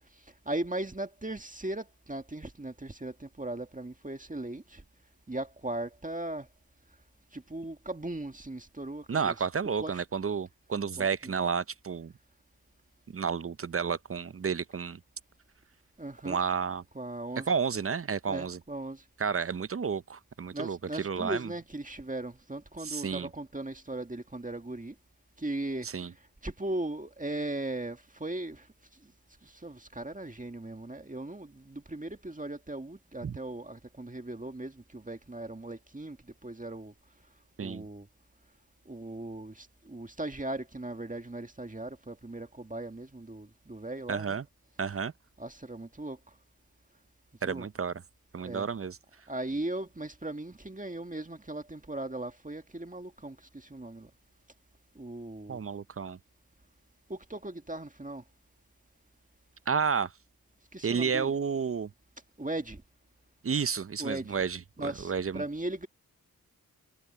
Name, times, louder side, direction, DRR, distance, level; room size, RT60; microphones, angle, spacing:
voice 1, 0.5-4.8 5.3-6.5 7.3-9.4 9.8-10.0 11.0-11.3 16.0-16.5 16.9-17.6 18.3-19.0 20.5-25.0 25.4-25.9 26.4-28.7 29.0-29.1 29.4-36.2 36.4-36.9 37.6-38.1 38.9-44.4 45.4-46.2 47.4-47.7 48.4-48.7 49.3-54.1 55.0-55.6 57.1-58.2 60.7-61.4 62.4-62.8 64.0-64.4 64.8-65.9, right 2 dB, 20° right, 1.8 m, -38 dB
voice 2, 9.1-12.1 13.1-15.0 16.2-16.8 17.5-18.6 19.2-21.5 22.8-23.3 25.8-26.1 33.2-33.4 37.6-37.8 44.1-44.4 44.8-45.1 47.4-47.9 48.3-49.0 55.5-56.2 59.7-60.1 60.8-61.9 63.4-65.4, right 6 dB, 35° right, 0.7 m, -31 dB
cardioid pair, 50°, 38 cm